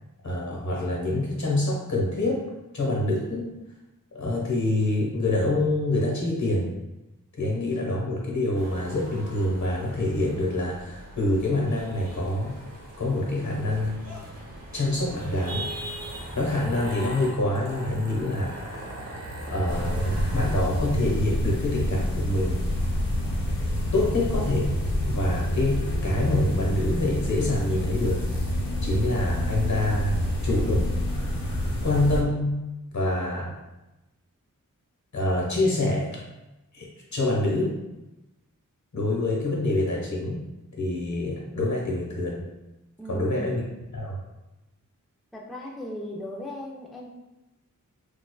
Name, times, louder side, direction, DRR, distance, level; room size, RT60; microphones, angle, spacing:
voice 1, 0.2-2.4 2.7-3.5 4.1-6.7 7.4-12.6 13.0-14.0 14.7-15.7 16.3-18.9 19.5-22.6 23.9-24.7 25.1-28.2 28.8-30.1 30.4-30.9 31.8-32.5 32.9-33.5 35.1-36.2 36.7-37.7 38.9-40.4 40.8-42.4 43.1-43.6 43.9-44.2, left 1 dB, 55° left, -3 dB, 1.1 m, -26 dB
sound 1, 8.5-20.6, right 1 dB, 50° right, 0.9 m, -39 dB
sound 2, 19.7-32.2, left 1 dB, 85° left, 0.8 m, -27 dB
voice 2, 43.0-43.6 45.3-47.1, left 1 dB, ahead, -3 dB, 0.5 m, -37 dB
4.3 x 2.4 x 2.2 m, 1.0 s
wide cardioid pair, 55°, 33 cm